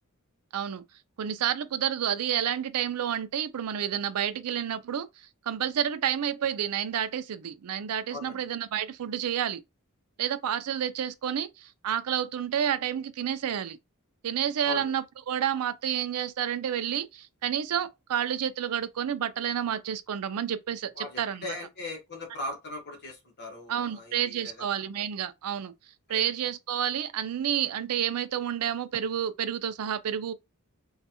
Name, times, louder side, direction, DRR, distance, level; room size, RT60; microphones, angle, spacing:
voice 1, 0.5-0.8 1.2-5.1 5.5-9.6 10.2-13.8 14.2-21.6 23.7-25.7 26.1-30.3, right 9 dB, 80° right, 0.4 m, -30 dB
voice 2, 8.1-8.4 14.6-14.9 20.9-24.8 26.1-26.2, left 2 dB, 50° left, 1.1 m, -39 dB
3.0 x 2.4 x 2.8 m
head